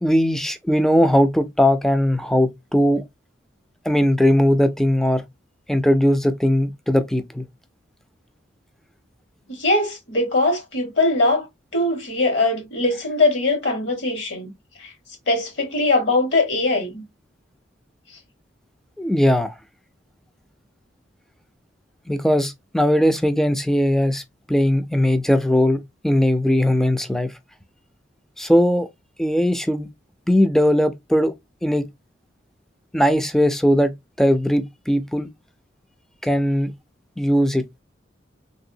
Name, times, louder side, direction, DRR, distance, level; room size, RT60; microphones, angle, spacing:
voice 1, 0.0-3.0 3.9-5.2 5.7-7.5 19.0-19.5 22.1-24.2 24.5-27.3 28.4-28.9 29.2-29.9 30.3-31.3 31.6-31.9 32.9-35.3 36.2-36.7 37.2-37.6, equal, ahead, 0.3 m, -19 dB
voice 2, 9.5-11.5 11.7-14.5 14.8-14.9 15.3-17.0, left 2 dB, 65° left, 1.4 m, -21 dB
3.3 x 2.7 x 2.6 m
head